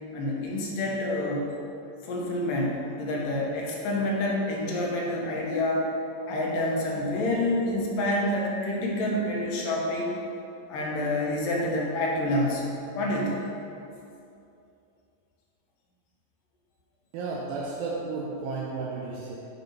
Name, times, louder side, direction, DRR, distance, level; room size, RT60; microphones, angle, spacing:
voice 1, 0.1-1.5 2.0-5.9 6.3-10.1 10.7-13.5, left 1 dB, 75° left, -2 dB, 2.8 m, -28 dB
voice 2, 17.1-19.4, right 4 dB, 85° right, -5 dB, 2.7 m, -33 dB
9.8 x 5.3 x 4.7 m, 2.7 s
omnidirectional pair, 4.0 m